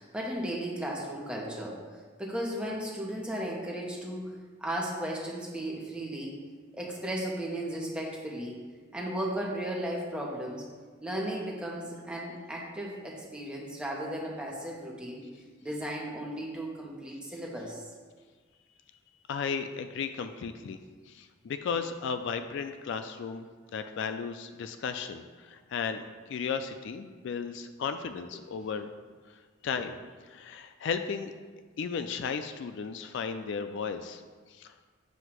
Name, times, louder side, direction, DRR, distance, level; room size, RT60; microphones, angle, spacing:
voice 1, 0.0-1.8 2.2-4.3 4.6-6.3 6.7-8.6 8.9-10.6 11.0-15.2 15.6-17.8 29.8-29.9, right 1 dB, 5° right, -3 dB, 1.0 m, -35 dB
voice 2, 19.3-20.8 21.1-28.9 29.3-30.0 30.3-31.3 31.8-34.2 34.5-34.7, left 6 dB, 65° left, 9 dB, 0.3 m, -35 dB
7.8 x 2.7 x 5.9 m, 1.5 s
head